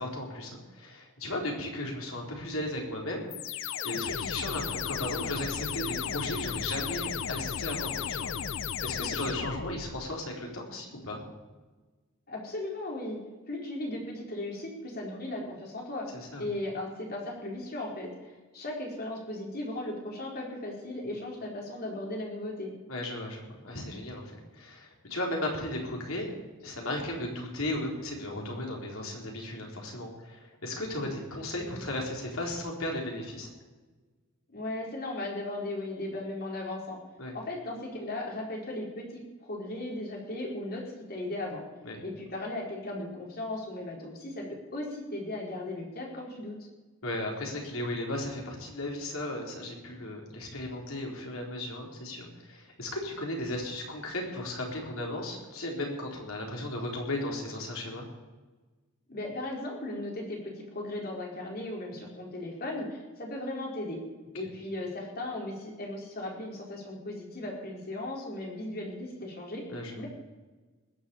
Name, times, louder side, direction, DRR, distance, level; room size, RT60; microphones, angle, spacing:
voice 1, 0.0-3.3 3.8-8.3 8.8-11.2 16.1-16.5 22.9-26.3 26.6-33.5 37.2-37.3 41.8-42.0 47.0-58.1 69.7-70.0, left 1 dB, 85° left, 0 dB, 4.0 m, -35 dB
sound 1, 3.3-10.1, left 7 dB, 65° left, 0.6 m, -34 dB
voice 2, 12.3-13.2 13.5-16.1 16.4-22.7 34.5-37.0 37.3-40.8 41.1-41.6 42.0-46.6 59.1-64.0 64.3-69.7 70.0-70.1, left 1 dB, 50° left, -1 dB, 4.3 m, -37 dB
20.5 x 7.4 x 7.2 m, 1.3 s
head